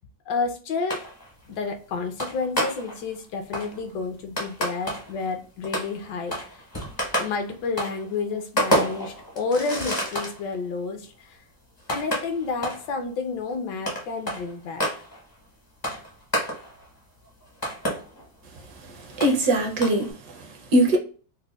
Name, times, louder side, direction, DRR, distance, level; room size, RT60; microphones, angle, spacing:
voice 1, 0.3-1.0 1.5-6.6 7.2-11.4 11.9-14.8, left 4 dB, 75° left, 1.2 m, -30 dB
sound 1, 0.9-1.5 2.2-3.1 3.5-5.3 5.6-10.4 11.0-11.1 11.8-12.9 13.5-13.6 13.9-15.2 15.8-16.9 17.3-18.3 18.6-18.7 19.2-19.5 19.8-20.1, equal, 25° left, 0.5 m, -29 dB
voice 2, 18.7-21.0, right 1 dB, 70° right, 1.1 m, -23 dB
5.0 x 2.1 x 2.3 m
omnidirectional pair, 2.1 m